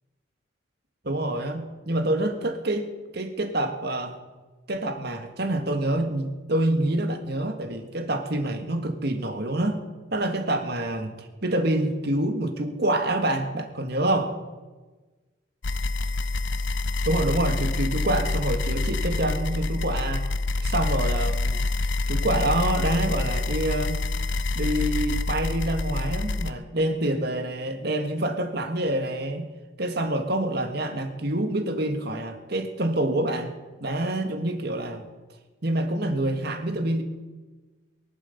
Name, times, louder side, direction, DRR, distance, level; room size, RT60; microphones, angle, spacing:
voice 1, 1.0-4.2 4.7-9.8 10.1-14.4 17.1-20.3 20.6-24.0 24.6-29.5 29.8-35.1 35.6-37.0, right 1 dB, 55° right, 6 dB, 1.7 m, -27 dB
sound 1, 15.6-26.5, left 2 dB, 65° left, 0.7 m, -27 dB
22.5 x 11.5 x 5.4 m, 1.3 s
head